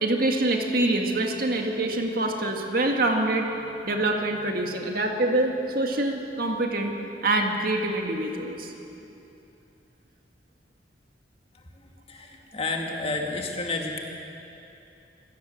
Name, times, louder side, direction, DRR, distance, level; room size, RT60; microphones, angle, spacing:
voice 1, 0.0-3.5 3.8-6.9 7.2-8.7, right 2 dB, 55° right, 2 dB, 2.1 m, -25 dB
voice 2, 11.5-14.0, left 3 dB, 35° left, 1 dB, 2.4 m, -31 dB
27.0 x 17.0 x 7.5 m, 2.8 s
head